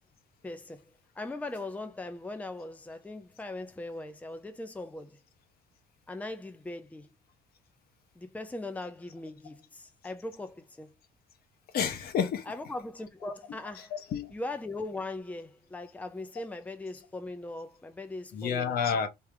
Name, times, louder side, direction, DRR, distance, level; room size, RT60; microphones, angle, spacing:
voice 1, 0.4-0.8 1.2-5.2 6.1-7.1 8.2-10.9 12.5-13.9 14.3-19.0, left 2 dB, 10° left, 0.7 m, -39 dB
voice 2, 11.7-12.4 13.8-14.3 18.3-19.1, left 7 dB, 65° left, 1.2 m, -30 dB
3.6 x 2.8 x 4.7 m
cardioid pair, 110°, 17 cm